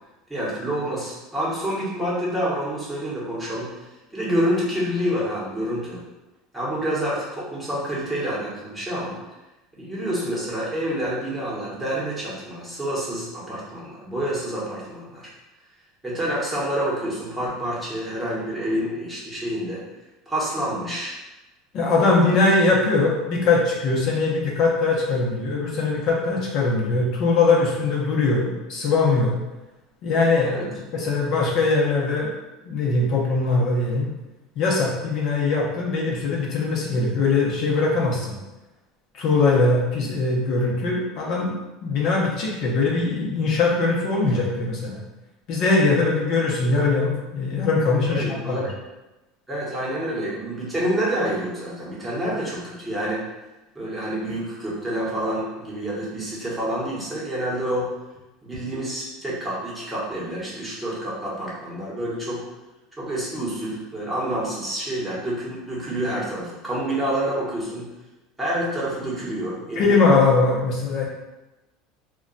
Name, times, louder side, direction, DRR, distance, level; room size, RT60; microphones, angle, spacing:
voice 1, 0.3-6.0 6.5-9.1 9.8-15.3 16.0-19.8 20.3-21.2 21.8-21.9 22.3-22.4 30.4-30.6 48.1-48.6 49.5-53.2 53.7-57.9 58.4-62.4 63.0-67.9 68.4-70.0, right 1 dB, 10° right, -7 dB, 0.9 m, -28 dB
voice 2, 21.7-29.4 30.0-32.3 32.7-34.1 34.6-38.4 39.1-45.0 45.5-48.7 69.8-71.1, left 3 dB, 50° left, -3 dB, 0.7 m, -21 dB
2.2 x 2.2 x 3.8 m, 1.0 s
supercardioid pair, 130°, 0 cm